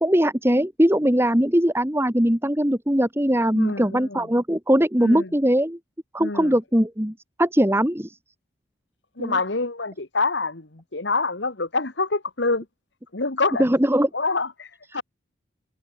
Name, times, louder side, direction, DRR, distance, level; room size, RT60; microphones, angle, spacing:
voice 1, 0.0-5.8 6.1-8.2 9.2-9.4 13.6-14.1 14.9-15.0, equal, 10° right, 2.0 m, -21 dB
voice 2, 3.5-4.3 5.0-5.3 6.2-6.5 9.2-12.7 13.1-13.7 14.1-15.0, left 3 dB, 60° left, 1.7 m, -26 dB
head